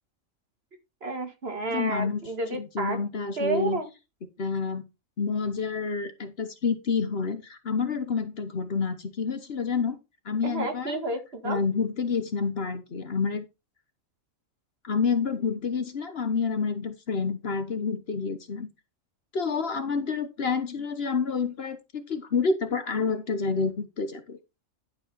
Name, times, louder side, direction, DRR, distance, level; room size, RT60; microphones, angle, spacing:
voice 1, 1.0-3.0 3.4-3.9 10.4-11.6, right 2 dB, 50° right, 6 dB, 1.9 m, -30 dB
voice 2, 1.7-2.2 2.5-3.8 4.4-4.8 5.2-10.0 10.2-11.0 11.4-13.4 14.8-18.7 19.3-24.4, left 5 dB, 50° left, 10 dB, 1.2 m, -28 dB
11.5 x 4.8 x 4.3 m, 0.25 s
omnidirectional pair, 1.4 m